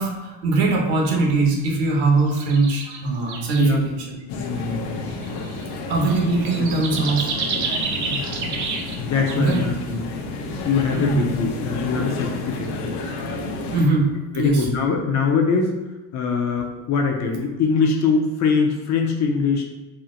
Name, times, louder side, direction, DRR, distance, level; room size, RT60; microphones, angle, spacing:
voice 1, 0.0-4.1 5.9-7.3 9.3-9.6 10.9-11.2 13.7-14.1 14.3-14.7, right 3 dB, 65° right, 0 dB, 1.2 m, -21 dB
sound 1, 2.2-3.0 3.3-3.8 4.6-4.7 5.1-9.0 9.3-9.7 10.8-11.0, right 4 dB, 40° right, 0.5 m, -29 dB
sound 2, 4.3-13.9, left 2 dB, 75° left, 0.8 m, -31 dB
voice 2, 4.3-5.3 6.6-6.7 8.1-8.6 9.0-10.0 10.6-13.0 14.3-15.8 16.1-19.6, left 5 dB, 35° left, 1 dB, 0.5 m, -23 dB
4.3 x 2.0 x 3.7 m, 1.2 s
cardioid pair, 135°, 47 cm